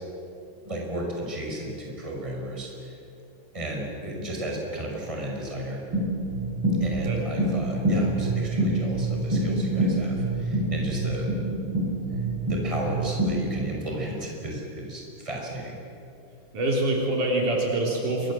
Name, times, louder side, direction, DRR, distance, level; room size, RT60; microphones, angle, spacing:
voice 1, 0.6-2.7 3.5-5.8 6.8-11.3 11.6-12.0 12.5-15.8, right 1 dB, 10° right, -1 dB, 5.7 m, -34 dB
sound 1, 5.9-13.6, right 1 dB, 35° right, 8.8 m, -26 dB
voice 2, 16.5-18.3, right 2 dB, 60° right, -1 dB, 4.9 m, -25 dB
29.0 x 24.0 x 7.8 m, 2.6 s
omnidirectional pair, 4.0 m